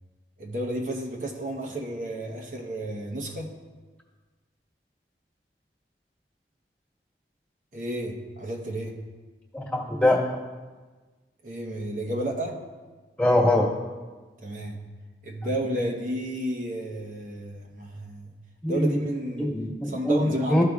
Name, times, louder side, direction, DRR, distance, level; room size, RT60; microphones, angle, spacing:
voice 1, 0.4-3.5 7.7-9.0 11.4-12.6 14.4-14.9 15.2-18.4 18.7-19.6 19.9-20.6, right 1 dB, 45° right, -1 dB, 0.8 m, -31 dB
voice 2, 9.5-10.2 13.2-13.7 15.7-15.8 18.6-19.0 19.4-20.2 20.5-20.6, left 1 dB, 10° left, -5 dB, 1.4 m, -22 dB
15.0 x 5.0 x 2.4 m, 1.3 s
head